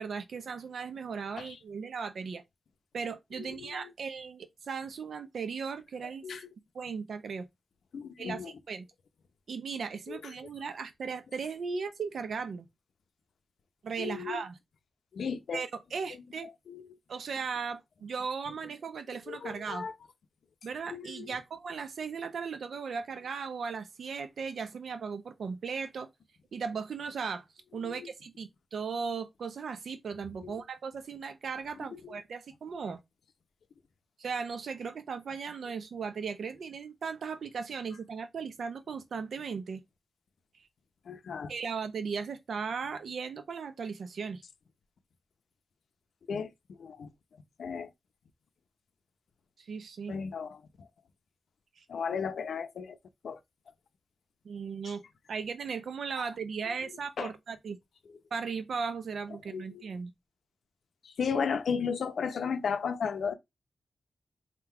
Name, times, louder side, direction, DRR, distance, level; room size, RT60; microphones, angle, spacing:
voice 1, 0.0-2.4 2.9-6.2 6.7-7.5 8.2-8.9 9.5-12.7 13.8-14.6 15.5-16.5 17.1-19.9 20.6-26.1 26.5-27.4 27.7-33.0 34.2-39.8 41.5-44.4 49.6-50.2 51.8-51.9 54.4-55.0 55.3-57.8 58.3-60.1, right 5 dB, 75° right, 0.7 m, -37 dB
voice 2, 3.6-3.9 6.2-6.4 7.9-8.5 10.1-10.2 14.0-14.4 15.1-15.6 16.7-16.8 19.3-19.9 20.9-21.3 30.4-30.5 41.1-41.5 46.3-46.5 46.8-47.1 47.6-47.9 50.1-50.6 51.9-53.0 53.2-53.4 57.2-57.3 59.5-59.6 61.0-63.3, left 6 dB, 85° left, 0.7 m, -34 dB
3.8 x 2.3 x 4.5 m
wide cardioid pair, 145°, 0 cm